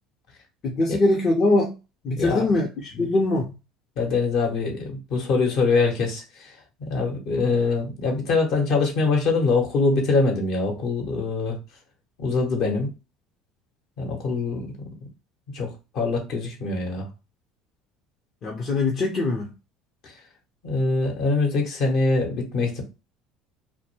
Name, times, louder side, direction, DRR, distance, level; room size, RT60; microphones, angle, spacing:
voice 1, 0.6-1.7 2.0-3.5 18.4-19.5, left 2 dB, 45° left, -1 dB, 0.6 m, -22 dB
voice 2, 2.2-2.5 3.0-3.1 4.0-11.6 12.2-12.9 14.0-14.7 15.5-17.1 20.0-20.1 20.6-22.8, left 3 dB, 65° left, 1 dB, 0.9 m, -24 dB
2.2 x 2.1 x 3.1 m, 0.28 s
hypercardioid pair, 80°, 0 cm